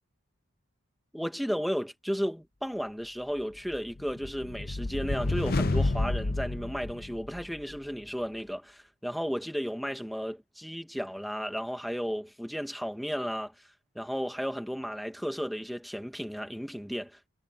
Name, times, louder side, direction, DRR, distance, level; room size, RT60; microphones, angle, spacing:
voice 1, 1.1-13.5 14.0-17.3, equal, ahead, 1.8 m, -34 dB
sound 1, 3.7-7.6, left 2 dB, 45° left, 0.8 m, -30 dB
head